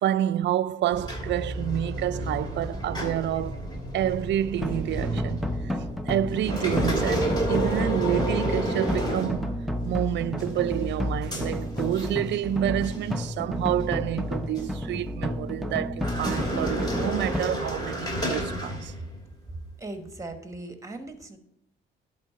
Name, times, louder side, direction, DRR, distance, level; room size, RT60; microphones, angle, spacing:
voice 1, 0.0-3.6 3.9-5.8 6.1-9.5 9.8-18.9, right 12 dB, 65° right, 0.4 m, -28 dB
sound 1, 0.9-9.9 10.4-12.5 12.8-13.1 13.8-14.7 15.9-19.3, right 1 dB, 20° left, 2.6 m, -31 dB
sound 2, 4.6-17.4, left 1 dB, ahead, 0.8 m, -31 dB
voice 2, 19.5-21.4, right 2 dB, 15° right, 1.3 m, -39 dB
10.5 x 3.9 x 5.6 m
cardioid pair, 90°, 20 cm